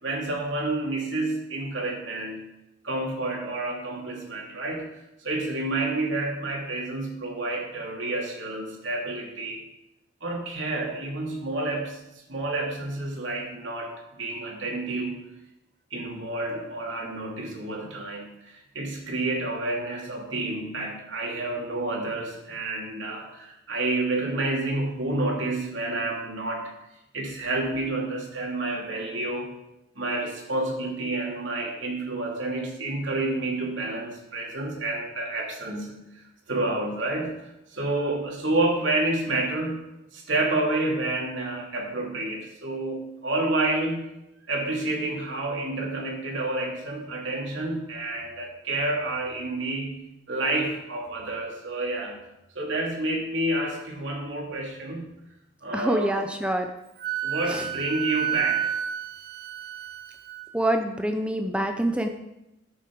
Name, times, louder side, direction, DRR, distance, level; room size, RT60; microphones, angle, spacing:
voice 1, 0.0-2.5 2.8-4.9 5.2-9.6 10.2-12.0 12.3-13.9 14.2-15.3 15.9-26.7 27.1-29.5 29.9-36.0 36.5-37.3 37.7-39.8 40.1-44.1 44.5-52.2 52.5-55.1 55.6-56.2 57.2-58.8, right 2 dB, 70° right, -1 dB, 2.7 m, -29 dB
voice 2, 55.7-56.7 57.5-57.6 60.5-62.1, right 1 dB, 5° right, 5 dB, 0.6 m, -26 dB
Wind instrument woodwind instrument, 57.0-60.5, right 10 dB, 50° right, 0.5 m, -30 dB
12.0 x 8.5 x 4.6 m, 0.90 s
head